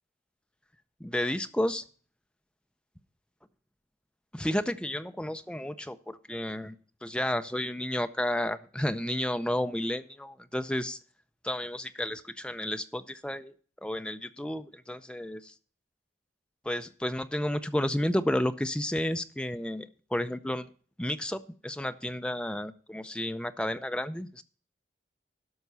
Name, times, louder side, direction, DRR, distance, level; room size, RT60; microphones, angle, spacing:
voice 1, 1.0-1.8 4.3-6.7 7.0-11.0 11.4-13.5 13.8-15.5 16.6-20.7 21.0-24.4, left 1 dB, 5° left, 10 dB, 0.5 m, -31 dB
12.5 x 5.9 x 5.5 m, 0.42 s
head